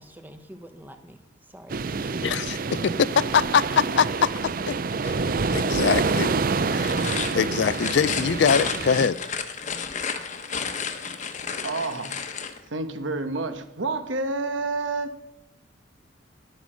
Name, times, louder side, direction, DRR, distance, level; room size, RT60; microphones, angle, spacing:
voice 1, 0.0-2.6, equal, 10° right, 0.9 m, -47 dB
sound 1, 1.7-9.1, right 4 dB, 45° right, 0.5 m, -27 dB
voice 2, 2.2-4.3 4.7-4.8 5.0-5.2 5.5-6.3 6.7-6.9 7.3-9.2, left 6 dB, 60° left, 0.4 m, -23 dB
sound 2, 6.8-12.6, left 6 dB, 40° left, 1.1 m, -31 dB
voice 3, 11.6-12.2 12.7-15.2, right 3 dB, 75° right, 1.2 m, -29 dB
11.0 x 9.2 x 6.2 m
head